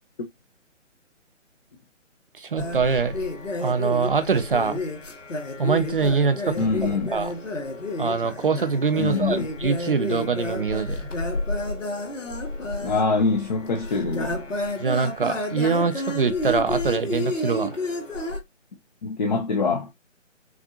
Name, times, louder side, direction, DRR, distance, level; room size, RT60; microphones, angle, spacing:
voice 1, 2.4-3.2 3.6-4.8 5.6-6.7 7.1-7.3 8.0-11.1 14.8-17.8, right 5 dB, 45° right, 0.5 m, -23 dB
sound 1, 2.6-18.4, left 2 dB, 75° left, 1.5 m, -31 dB
voice 2, 6.6-7.1 9.0-9.5 12.8-14.4 19.0-19.9, left 4 dB, 35° left, 0.7 m, -24 dB
6.0 x 2.5 x 2.7 m
figure-of-eight pair, 145°, 38 cm